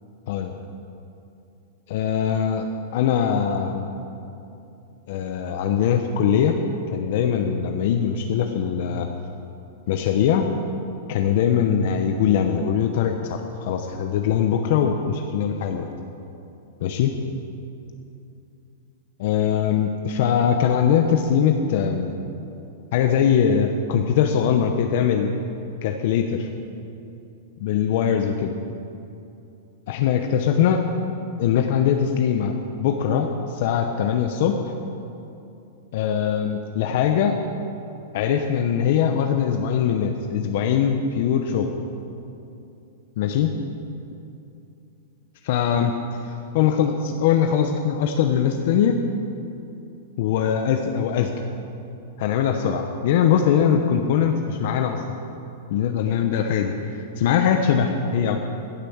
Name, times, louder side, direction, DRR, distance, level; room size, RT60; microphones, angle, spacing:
voice 1, 1.9-3.9 5.1-6.6 6.9-9.1 9.9-10.5 11.1-15.9 16.8-17.2 19.2-22.1 22.9-25.3 25.8-26.5 27.6-28.6 29.9-30.8 31.4-34.7 35.9-37.4 38.1-41.7 43.2-43.5 45.4-45.9 46.5-49.0 50.2-51.3 52.2-55.0 55.7-58.4, left 8 dB, 55° left, 5 dB, 0.9 m, -21 dB
15.5 x 8.4 x 7.2 m, 2.7 s
supercardioid pair, 150°, 0 cm